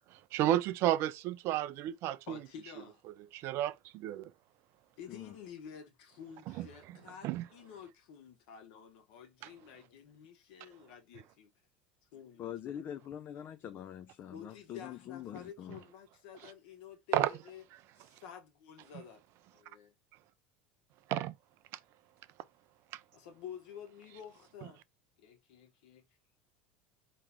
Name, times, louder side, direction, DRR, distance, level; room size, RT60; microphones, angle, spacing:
voice 1, 0.3-2.2 3.3-4.3 6.6-6.7 7.2-7.4 17.1-17.3 21.1-21.3, right 13 dB, 55° right, 0.4 m, -31 dB
voice 2, 2.3-3.0 5.0-11.5 12.1-12.5 13.6-13.8 14.3-17.6 18.0-19.2 19.5-19.9 23.1-24.8 25.2-26.0, left 8 dB, 65° left, 1.4 m, -50 dB
voice 3, 12.4-15.8, left 10 dB, 40° left, 0.5 m, -44 dB
4.6 x 3.0 x 3.5 m
hypercardioid pair, 80°, 5 cm